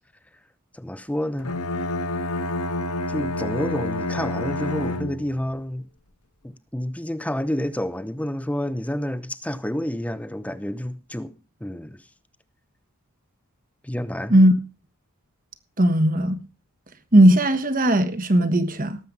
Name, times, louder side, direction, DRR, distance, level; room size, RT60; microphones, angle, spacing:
voice 1, 0.7-1.5 3.1-5.8 6.4-11.3 11.6-12.0 13.8-14.4, left 1 dB, 5° left, 0.7 m, -29 dB
Bowed string instrument, 1.4-5.5, left 2 dB, 80° left, 1.4 m, -28 dB
voice 2, 15.8-16.4 17.1-19.0, right 1 dB, 40° right, 1.4 m, -17 dB
18.0 x 7.6 x 5.3 m
head